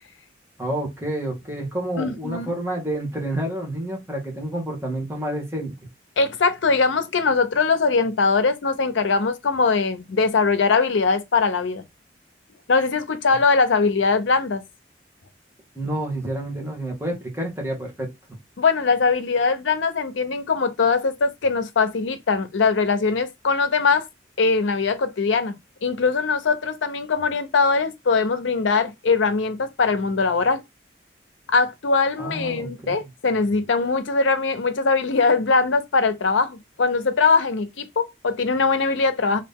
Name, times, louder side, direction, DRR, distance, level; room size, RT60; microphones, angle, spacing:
voice 1, 0.6-5.7 15.7-18.1 32.2-32.9, right 1 dB, 10° right, 1.2 m, -29 dB
voice 2, 2.0-2.5 6.2-11.8 12.7-14.6 18.6-24.1 24.4-25.5 25.8-30.6 31.5-39.4, left 4 dB, 90° left, 0.6 m, -21 dB
3.0 x 2.6 x 3.4 m
head